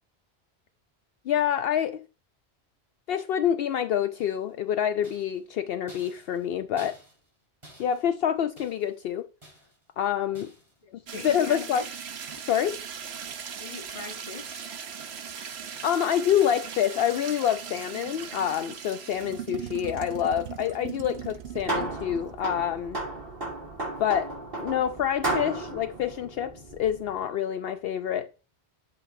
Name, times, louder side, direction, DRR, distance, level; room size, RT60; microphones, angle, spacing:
voice 1, 1.3-2.0 3.1-7.0 7.8-9.3 10.0-10.5 11.2-11.8 12.5-12.8 15.8-23.0 24.0-28.3, left 9 dB, 70° left, 0.8 m, -27 dB
sound 1, 4.2-4.6 5.0-7.4 7.6-9.0 9.4-9.9 10.3-10.8 11.3-11.7 12.3-12.8 13.1-13.6 13.9-14.6 15.0-15.4 15.7-16.1 16.4-16.8, right 1 dB, 30° right, 4.9 m, -54 dB
voice 2, 10.8-11.9 13.6-14.7, left 4 dB, 35° left, 1.2 m, -41 dB
sound 2, 11.1-22.4, right 8 dB, 80° right, 1.1 m, -39 dB
sound 3, 21.2-27.1, right 2 dB, 60° right, 3.1 m, -34 dB
11.5 x 7.7 x 2.7 m
omnidirectional pair, 1.1 m